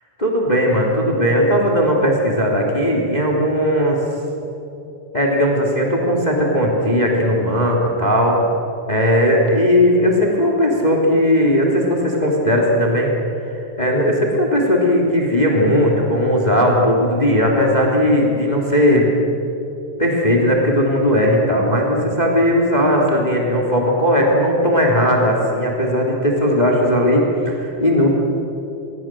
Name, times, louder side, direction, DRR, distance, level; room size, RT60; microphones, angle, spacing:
voice 1, 0.2-4.0 5.1-8.4 8.9-13.1 13.4-19.1 20.0-28.1, equal, 10° left, 0 dB, 2.9 m, -17 dB
27.0 x 22.0 x 7.7 m, 3.0 s
omnidirectional pair, 4.0 m